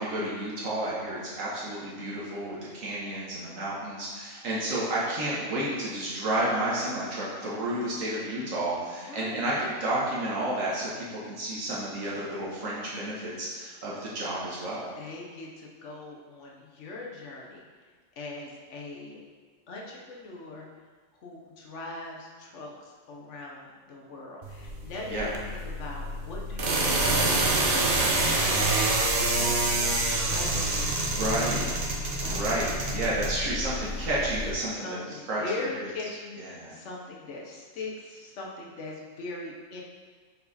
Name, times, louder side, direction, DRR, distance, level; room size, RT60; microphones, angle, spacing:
voice 1, 0.0-14.9 25.1-25.3 30.5-30.7 31.1-31.7 32.2-35.0 35.3-35.4 35.8-35.9 36.4-36.7, right 1 dB, 80° right, -6 dB, 1.5 m, -31 dB
voice 2, 8.8-9.6 14.9-17.7 18.1-19.2 19.7-20.7 21.1-25.3 25.6-27.6 28.5-31.7 32.1-32.4 34.8-39.8, left 2 dB, 65° left, -2 dB, 1.2 m, -41 dB
sound 1, 24.4-34.5, right 2 dB, 50° right, 0.9 m, -27 dB
5.4 x 4.6 x 4.1 m, 1.5 s
omnidirectional pair, 1.4 m